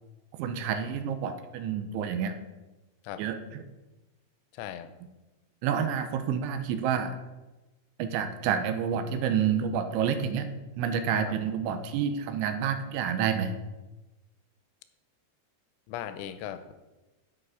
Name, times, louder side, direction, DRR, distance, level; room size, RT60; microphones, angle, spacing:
voice 1, 0.4-2.3 3.2-3.4 5.6-7.2 8.0-10.5 10.8-13.5, right 7 dB, 90° right, 8 dB, 3.1 m, -28 dB
voice 2, 4.5-4.9 11.2-11.3 15.9-16.7, left 11 dB, 90° left, 11 dB, 3.1 m, -38 dB
10.5 x 8.2 x 4.8 m, 1.1 s
omnidirectional pair, 5.5 m